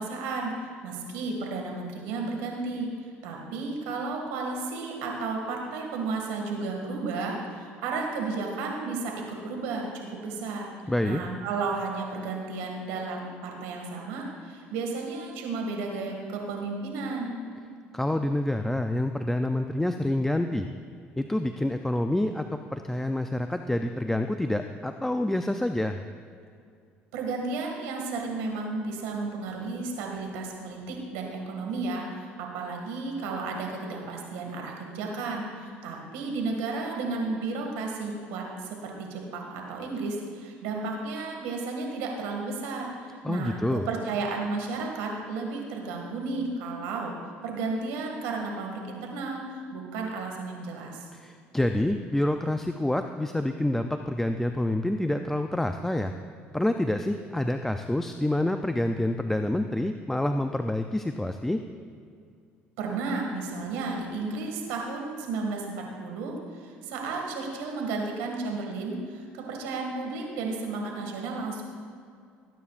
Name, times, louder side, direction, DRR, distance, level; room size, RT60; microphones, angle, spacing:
voice 1, 0.0-2.9 3.2-9.1 9.4-10.7 11.0-17.4 27.1-47.1 47.4-49.4 49.7-51.1 62.8-71.6, right 3 dB, 85° right, 1 dB, 2.1 m, -33 dB
voice 2, 10.9-11.2 17.9-20.7 21.2-22.4 22.7-26.0 43.2-43.9 51.1-56.1 56.5-61.6, left 1 dB, 10° left, 6 dB, 0.5 m, -27 dB
20.0 x 9.4 x 2.5 m, 2.3 s
supercardioid pair, 85°, 4 cm